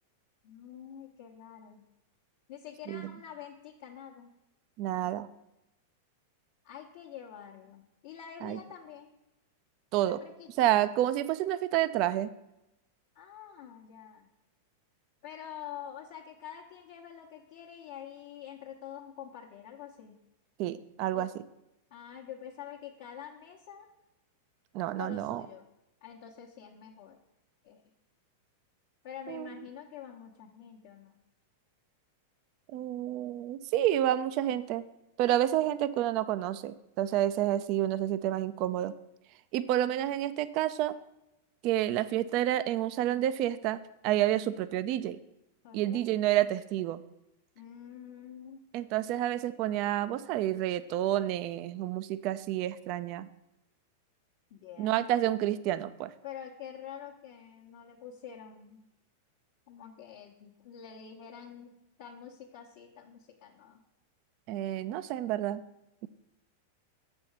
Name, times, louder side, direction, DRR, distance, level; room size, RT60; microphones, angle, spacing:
voice 1, 0.4-1.8 2.5-4.3 6.6-9.1 9.9-10.7 13.1-14.3 15.2-20.2 21.1-21.3 21.9-23.9 25.0-25.6 26.0-27.2 27.6-27.8 29.0-31.2 45.6-46.0 47.6-48.6 54.5-55.0 56.2-58.8 59.7-61.7 62.0-63.8, left 9 dB, 60° left, -1 dB, 1.0 m, -46 dB
voice 2, 4.8-5.3 8.4-8.6 9.9-10.2 10.6-12.3 20.6-21.3 24.7-25.4 29.3-29.5 32.7-34.8 35.2-38.9 39.5-40.9 41.6-43.8 44.0-45.2 45.7-47.0 48.7-53.3 54.8-56.1 64.5-65.6, right 12 dB, 50° right, 13 dB, 0.4 m, -29 dB
7.1 x 4.4 x 6.5 m, 0.89 s
hypercardioid pair, 100°, 0 cm